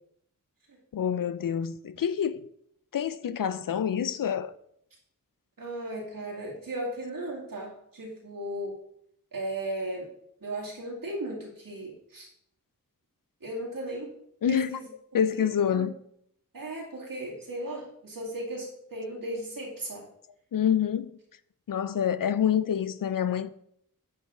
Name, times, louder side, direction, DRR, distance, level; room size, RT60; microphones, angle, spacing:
voice 1, 0.9-2.4 2.9-4.5 14.4-14.7 15.1-15.9 20.5-21.2 21.7-23.5, left 8 dB, 80° left, 0.5 m, -27 dB
voice 2, 5.6-8.8 9.3-10.1 10.4-12.3 13.4-14.1 14.5-14.9 15.3-15.8 16.5-20.1, right 1 dB, 85° right, 2.2 m, -36 dB
8.4 x 5.6 x 3.7 m
wide cardioid pair, 65°, 33 cm